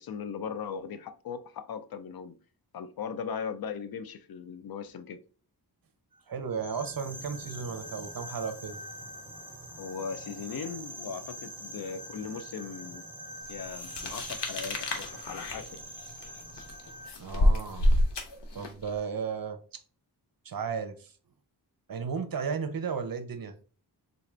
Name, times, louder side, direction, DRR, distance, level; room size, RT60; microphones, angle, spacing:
voice 1, 0.0-2.4 2.7-5.2 9.8-13.0 13.5-15.8, left 6 dB, 60° left, 0.5 m, -38 dB
voice 2, 6.3-8.8 17.2-17.9 18.5-19.6 20.4-21.1 21.9-23.5, right 6 dB, 55° right, 0.6 m, -34 dB
sound 1, 6.5-17.1, right 1 dB, 10° right, 1.1 m, -44 dB
sound 2, 13.8-18.9, left 1 dB, 90° left, 0.8 m, -28 dB
3.9 x 2.4 x 3.2 m
wide cardioid pair, 80°, 41 cm